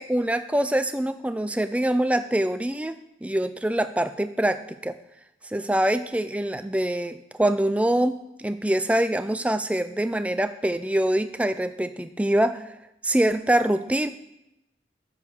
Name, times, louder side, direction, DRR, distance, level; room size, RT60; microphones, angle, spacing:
voice 1, 0.0-5.0 5.4-12.7 13.0-14.1, right 1 dB, 5° right, 11 dB, 0.4 m, -24 dB
9.6 x 6.6 x 5.3 m, 0.87 s
head